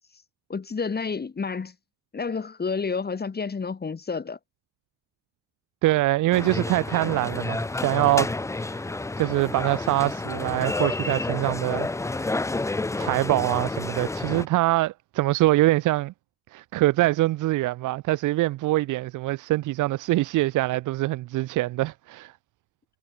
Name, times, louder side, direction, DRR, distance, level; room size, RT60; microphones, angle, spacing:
voice 1, 0.5-1.7 2.1-4.4, left 5 dB, 30° left, 3.3 m, -30 dB
voice 2, 5.8-8.3 8.6-8.9 9.2-11.9 12.1-12.4 13.0-16.1 16.5-22.3, right 17 dB, 85° right, 0.8 m, -24 dB
sound 1, 6.3-14.5, left 2 dB, 10° left, 0.5 m, -30 dB
cardioid pair, 95°, 30 cm